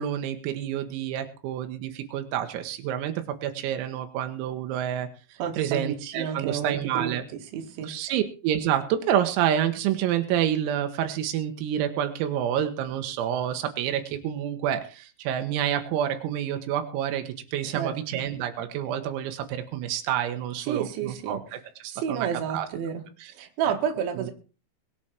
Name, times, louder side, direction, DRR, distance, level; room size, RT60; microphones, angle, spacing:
voice 1, 0.0-5.1 5.6-7.2 7.8-21.4 21.8-22.7, right 10 dB, 90° right, 7 dB, 4.1 m, -28 dB
voice 2, 5.4-7.9 17.6-17.9 20.6-21.6 21.9-23.1 23.3-24.3, right 8 dB, 70° right, 4 dB, 4.2 m, -31 dB
22.5 x 8.3 x 4.4 m, 0.36 s
omnidirectional pair, 5.9 m